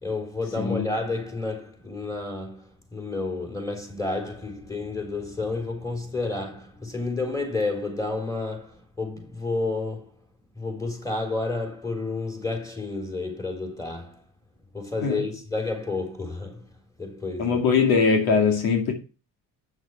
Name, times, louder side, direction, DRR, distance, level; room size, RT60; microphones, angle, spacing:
voice 1, 0.0-10.1 10.6-14.2 14.7-16.7 17.0-17.6, left 3 dB, 10° left, 3.6 m, -30 dB
voice 2, 17.4-18.9, left 5 dB, 90° left, 2.5 m, -21 dB
8.6 x 6.3 x 5.8 m
cardioid pair, 95°, 36 cm